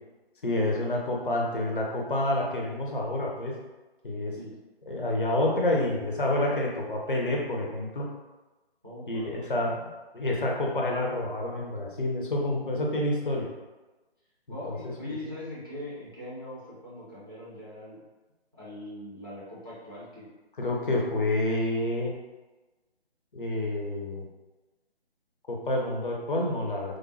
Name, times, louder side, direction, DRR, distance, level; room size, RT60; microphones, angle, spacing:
voice 1, 0.4-3.5 4.0-4.3 4.9-8.1 9.1-13.5 14.6-14.8 20.6-22.1 23.3-24.3 25.5-27.0, left 1 dB, 55° left, -1 dB, 0.7 m, -28 dB
voice 2, 8.8-9.5 14.5-18.0 18.6-20.3, left 1 dB, 20° right, -9 dB, 0.4 m, -41 dB
3.2 x 2.0 x 2.5 m, 1.2 s
figure-of-eight pair, 145°, 32 cm